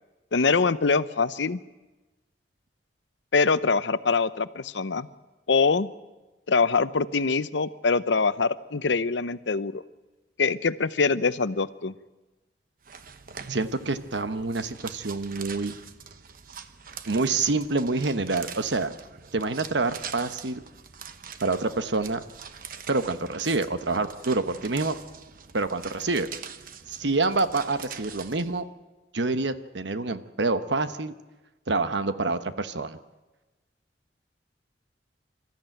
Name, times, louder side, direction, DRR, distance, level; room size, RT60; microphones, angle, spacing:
voice 1, 0.3-1.6 3.3-5.1 5.5-5.9 6.5-9.8 10.4-11.9, left 4 dB, 90° left, 15 dB, 0.7 m, -24 dB
sound 1, 12.8-28.6, right 7 dB, 50° right, 1.0 m, -44 dB
voice 2, 13.5-15.7 17.1-18.9 19.3-20.6 21.4-22.2 22.9-25.0 25.5-26.3 26.9-28.6 29.1-31.1 31.7-33.0, right 3 dB, 85° right, 10 dB, 1.1 m, -27 dB
26.5 x 14.0 x 9.1 m, 1.2 s
head